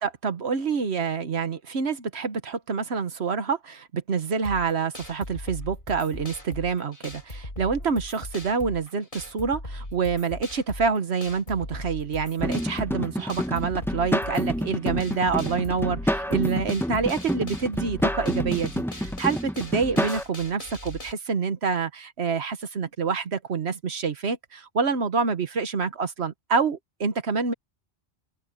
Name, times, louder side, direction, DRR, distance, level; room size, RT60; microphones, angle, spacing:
voice 1, 0.0-18.7 19.2-27.5, right 5 dB, 75° right, 1.5 m, -27 dB
sound 1, 4.4-21.1, left 1 dB, 50° left, 6.3 m, -39 dB
sound 2, 12.4-20.2, equal, ahead, 1.1 m, -28 dB
open air
omnidirectional pair, 1.1 m